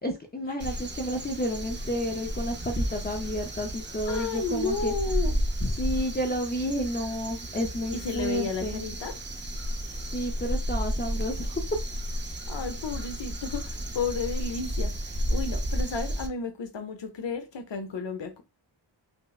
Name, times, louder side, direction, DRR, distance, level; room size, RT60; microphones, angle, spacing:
voice 1, 0.0-4.9 5.6-8.8 10.0-11.6, equal, 20° left, 0.5 m, -31 dB
Crow, 0.6-16.3, equal, 25° right, 0.5 m, -32 dB
voice 2, 4.1-5.4 7.9-9.1 12.5-18.4, left 5 dB, 70° left, 0.8 m, -32 dB
5.3 x 2.0 x 2.3 m
wide cardioid pair, 70°, 46 cm